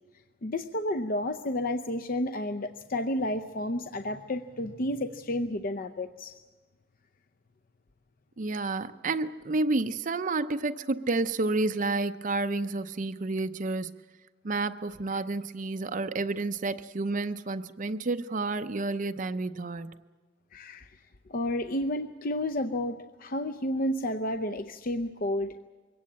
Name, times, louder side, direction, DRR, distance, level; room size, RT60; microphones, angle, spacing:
voice 1, 0.4-6.3 20.5-21.0 21.3-25.5, left 1 dB, 45° left, 8 dB, 0.7 m, -31 dB
voice 2, 8.4-14.0 14.4-20.0, right 3 dB, 40° right, 10 dB, 0.6 m, -30 dB
23.0 x 17.5 x 8.6 m, 1.4 s
head